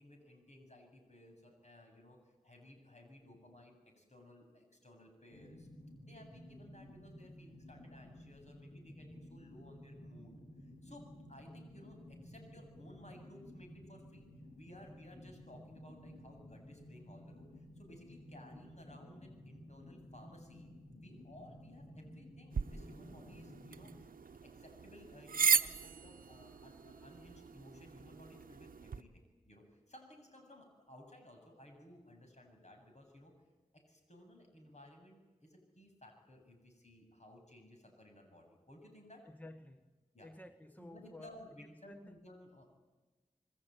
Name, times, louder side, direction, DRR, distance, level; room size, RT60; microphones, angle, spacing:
voice 1, 0.0-5.7 6.1-14.3 14.5-20.7 21.0-33.3 33.7-39.2 40.1-40.3 40.8-42.7, left 1 dB, 55° left, 3 dB, 7.9 m, -58 dB
sound 1, 5.3-23.9, left 1 dB, 80° left, 4.3 m, -54 dB
sound 2, 22.5-29.0, right 6 dB, 90° right, 0.8 m, -37 dB
voice 2, 39.2-39.9 40.2-41.4 41.9-42.2, left 1 dB, 10° left, 8 dB, 1.3 m, -53 dB
27.0 x 20.5 x 9.3 m, 1.3 s
cardioid pair, 45°, 14 cm